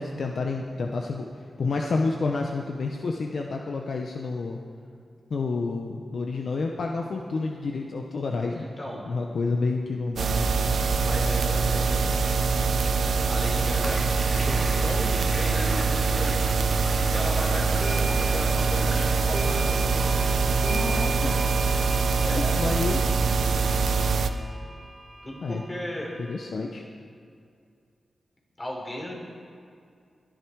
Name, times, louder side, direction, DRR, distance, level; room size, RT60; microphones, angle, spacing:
voice 1, 0.0-4.6 5.3-8.7 9.1-10.5 20.6-21.4 22.3-23.0 25.4-25.6 26.2-26.8, left 3 dB, 65° left, 2 dB, 0.9 m, -29 dB
voice 2, 8.5-9.1 11.0-12.1 13.3-16.5 17.1-20.1 22.2-22.6 25.2-26.1 28.6-29.2, left 1 dB, 30° left, -2 dB, 4.2 m, -36 dB
sound 1, 10.2-24.3, right 4 dB, 80° right, 0.7 m, -24 dB
sound 2, 10.8-20.3, equal, 10° left, 2.3 m, -40 dB
sound 3, 17.5-26.4, right 2 dB, 25° right, 3.3 m, -38 dB
21.0 x 10.5 x 4.7 m, 2.3 s
wide cardioid pair, 100°, 0 cm